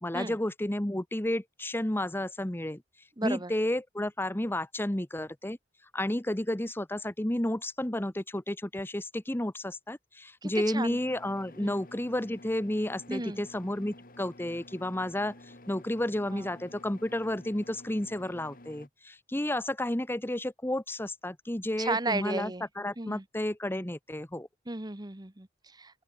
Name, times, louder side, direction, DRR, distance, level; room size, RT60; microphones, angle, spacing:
voice 1, 0.0-2.8 3.2-5.6 5.9-24.5, left 1 dB, 10° left, 1.0 m, -32 dB
voice 2, 3.2-3.5 10.4-11.0 11.6-11.8 13.1-13.4 16.3-16.5 21.8-22.6 23.0-23.2 24.7-26.0, right 2 dB, 20° right, 1.4 m, -34 dB
sound 1, 10.8-18.9, left 1 dB, 50° left, 4.8 m, -52 dB
open air
head